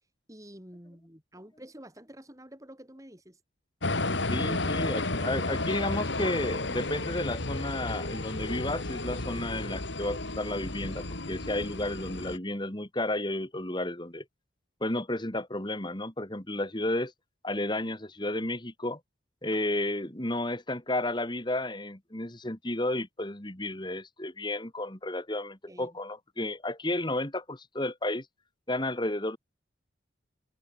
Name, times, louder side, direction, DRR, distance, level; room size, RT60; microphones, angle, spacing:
voice 1, 0.3-3.4 4.4-4.7 25.7-26.0, equal, 15° right, 4.6 m, -48 dB
sound 1, 3.8-12.4, left 2 dB, 70° left, 2.7 m, -32 dB
voice 2, 4.3-14.2 14.8-17.1 17.4-19.0 19.4-28.2 28.7-29.4, left 1 dB, 25° left, 2.7 m, -32 dB
head